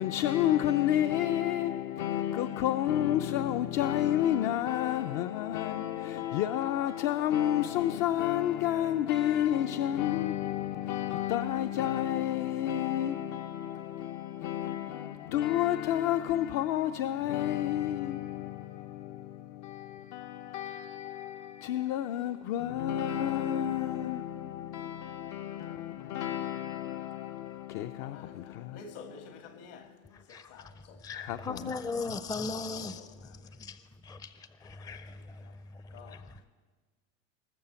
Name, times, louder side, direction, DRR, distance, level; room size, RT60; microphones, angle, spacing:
voice 1, 0.0-29.2 29.6-29.9 31.2-31.6, left 12 dB, 55° left, 0.6 m, -30 dB
voice 2, 28.0-29.9 30.3-31.0 32.5-33.5 35.1-35.5 35.9-36.2, left 4 dB, 70° left, 2.0 m, -51 dB
voice 3, 30.1-36.4, left 4 dB, 10° left, 0.5 m, -39 dB
20.5 x 6.8 x 6.9 m
hypercardioid pair, 95°, 37 cm